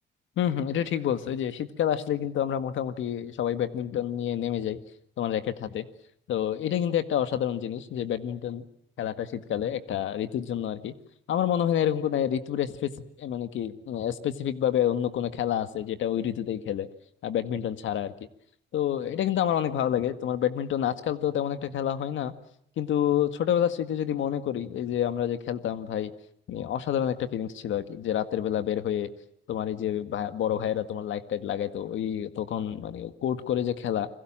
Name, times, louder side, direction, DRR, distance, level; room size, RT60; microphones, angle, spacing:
voice 1, 0.4-4.8 5.2-5.9 6.3-8.6 9.0-10.9 11.3-16.9 17.2-18.1 18.7-22.3 22.8-26.1 26.5-29.1 29.5-34.1, left 10 dB, 75° left, 10 dB, 1.9 m, -28 dB
29.0 x 22.0 x 7.6 m, 0.68 s
cardioid pair, 90°, 20 cm